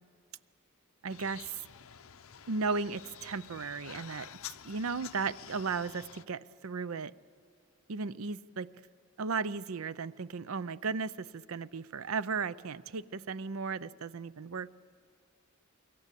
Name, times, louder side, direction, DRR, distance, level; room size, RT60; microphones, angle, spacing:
voice 1, 1.0-1.6 2.5-7.1 7.9-8.7 9.2-14.8, right 4 dB, 75° right, 17 dB, 0.6 m, -35 dB
sound 1, 1.1-6.2, left 9 dB, 75° left, 0.7 m, -49 dB
28.5 x 22.0 x 8.3 m, 2.2 s
head